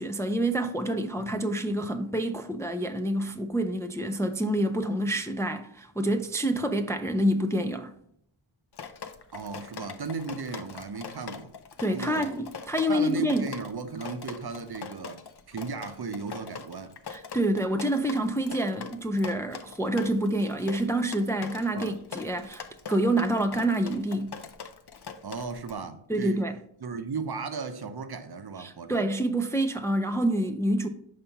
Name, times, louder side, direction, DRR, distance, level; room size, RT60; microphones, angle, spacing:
voice 1, 0.0-7.9 11.8-13.5 17.1-24.3 26.1-26.6 28.6-30.9, right 1 dB, 5° left, 0.4 m, -27 dB
Drip, 8.7-25.7, left 6 dB, 55° left, 0.6 m, -42 dB
voice 2, 9.3-11.5 11.8-12.3 12.9-17.0 21.7-22.0 25.2-26.4 26.8-29.1, right 4 dB, 50° right, 0.6 m, -36 dB
5.5 x 3.4 x 5.7 m
wide cardioid pair, 50°, 50 cm